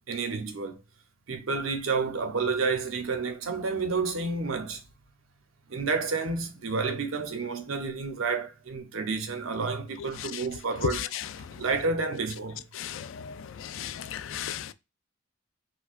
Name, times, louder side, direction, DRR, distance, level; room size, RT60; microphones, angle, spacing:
voice 1, 0.1-0.8 1.3-4.8 5.7-11.1 11.5-12.6, right 4 dB, 85° right, 0.7 m, -30 dB
voice 2, 12.8-13.3 13.8-14.7, left 9 dB, 70° left, 0.3 m, -36 dB
4.4 x 2.2 x 2.4 m
head